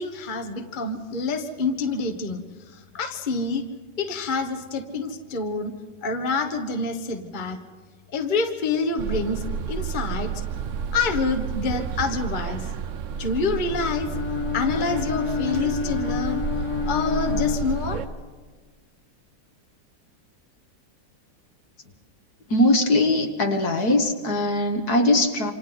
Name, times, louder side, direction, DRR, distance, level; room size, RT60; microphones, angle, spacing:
voice 1, 0.0-3.7 4.0-5.7 6.0-7.6 8.1-10.3 10.9-12.7 13.2-14.1 14.5-16.4 16.9-18.0, left 3 dB, 30° left, 6 dB, 1.3 m, -27 dB
sound 1, 9.0-18.1, right 6 dB, 60° right, 0.8 m, -31 dB
Bowed string instrument, 13.7-18.3, left 7 dB, 70° left, 2.2 m, -29 dB
voice 2, 22.5-25.5, left 1 dB, 55° left, 4 dB, 2.1 m, -21 dB
28.0 x 26.5 x 4.0 m, 1.5 s
omnidirectional pair, 2.0 m